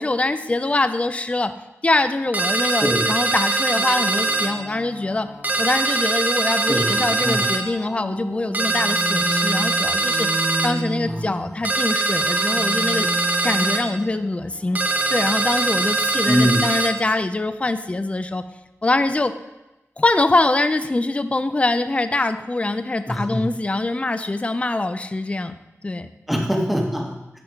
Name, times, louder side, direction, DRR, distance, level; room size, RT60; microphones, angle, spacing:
voice 1, 0.0-1.5 1.8-5.3 5.6-10.3 10.6-13.1 13.4-14.8 15.1-18.4 18.8-19.3 20.0-25.6 25.8-26.1, left 2 dB, 25° left, 10 dB, 0.3 m, -23 dB
sound 1, 2.3-4.5 5.4-7.6 8.5-10.7 11.6-13.8 14.7-16.9, right 2 dB, 30° right, 0.6 m, -22 dB
sound 2, 3.7-6.2 6.7-11.6 11.9-16.8, equal, 70° left, 1.5 m, -34 dB
voice 2, 6.7-7.5 11.0-11.5 16.3-16.7 23.1-23.5 26.3-27.4, equal, ahead, 0 dB, 1.0 m, -23 dB
10.0 x 3.4 x 2.8 m, 0.99 s
wide cardioid pair, 60°, 5 cm